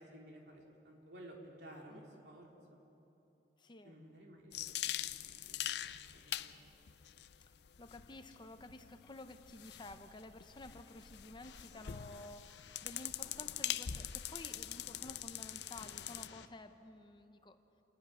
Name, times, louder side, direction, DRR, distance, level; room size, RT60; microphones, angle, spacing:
voice 1, 0.0-2.8 3.8-5.2 5.5-6.5, right 1 dB, 70° right, -1 dB, 3.3 m, -55 dB
voice 2, 3.6-4.0 7.8-17.6, left 2 dB, 25° left, 8 dB, 0.8 m, -52 dB
sound 1, 4.5-16.3, left 11 dB, 70° left, 0.5 m, -43 dB
sound 2, 11.4-16.5, left 6 dB, 90° left, 1.0 m, -57 dB
28.5 x 11.0 x 9.6 m, 3.0 s
head